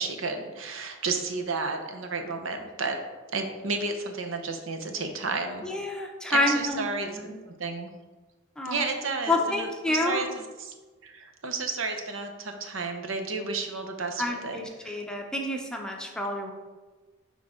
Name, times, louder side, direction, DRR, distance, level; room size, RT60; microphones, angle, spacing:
voice 1, 0.0-3.0 3.3-5.6 6.3-7.2 7.5-7.9 8.6-10.7 11.0-15.0, right 4 dB, 75° right, 5 dB, 0.9 m, -32 dB
voice 2, 5.6-6.9 7.2-7.3 8.6-8.9 9.3-10.3 14.2-16.5, left 2 dB, 5° left, 1 dB, 0.6 m, -28 dB
10.5 x 3.8 x 3.7 m, 1.3 s
head